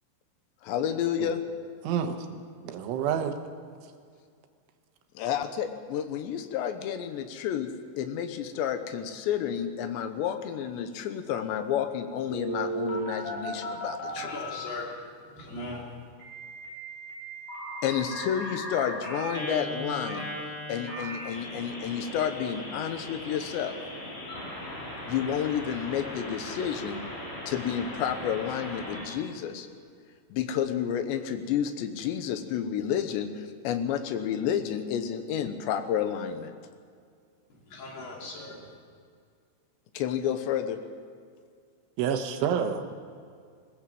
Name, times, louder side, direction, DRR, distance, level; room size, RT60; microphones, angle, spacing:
voice 1, 0.6-1.4 5.2-7.7 8.0-14.3 17.8-20.3 20.7-23.7 25.1-27.0 27.5-29.7 30.3-36.5 39.9-40.8, left 9 dB, 75° left, 3.1 m, -30 dB
voice 2, 1.8-3.4 42.0-42.8, right 8 dB, 80° right, 3.6 m, -29 dB
Telephone, 12.3-14.8 16.2-29.0, equal, 40° left, 6.8 m, -37 dB
voice 3, 14.2-15.0 15.3-15.8 37.7-38.7, left 1 dB, 55° left, 5.0 m, -39 dB
20.5 x 17.0 x 7.6 m
omnidirectional pair, 5.6 m